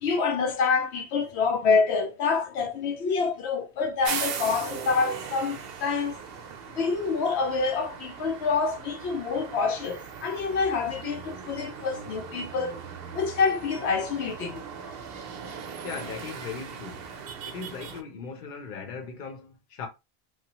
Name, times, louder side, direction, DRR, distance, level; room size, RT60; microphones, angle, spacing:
voice 1, 0.0-6.2 6.7-12.8 13.1-15.0, left 5 dB, 80° left, 0.8 m, -27 dB
sound 1, 4.0-18.0, right 6 dB, 70° right, 0.8 m, -39 dB
voice 2, 15.8-17.1 17.4-19.9, left 5 dB, 55° left, 0.8 m, -38 dB
3.1 x 2.2 x 2.9 m
omnidirectional pair, 1.1 m